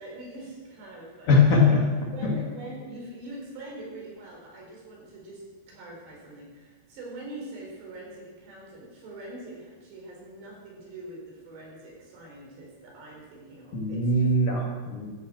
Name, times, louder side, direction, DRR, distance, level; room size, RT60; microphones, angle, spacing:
voice 1, 0.0-1.5 2.1-14.3, right 2 dB, 70° right, -2 dB, 6.6 m, -43 dB
voice 2, 1.3-2.4 13.7-15.1, left 3 dB, 55° left, -1 dB, 3.0 m, -22 dB
13.0 x 11.0 x 7.8 m, 1.3 s
omnidirectional pair, 5.2 m